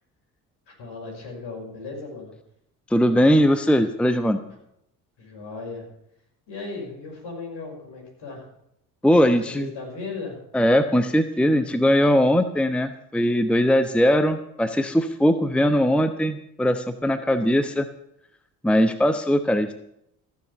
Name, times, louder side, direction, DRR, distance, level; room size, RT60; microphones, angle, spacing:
voice 1, 0.7-2.3 5.2-5.8 6.5-8.5 9.2-10.4, left 3 dB, 60° left, 0 dB, 6.0 m, -36 dB
voice 2, 2.9-4.4 9.0-9.7 10.5-17.9 18.6-19.8, equal, ahead, 10 dB, 0.9 m, -20 dB
14.5 x 7.1 x 8.7 m, 0.77 s
hypercardioid pair, 50°, 47 cm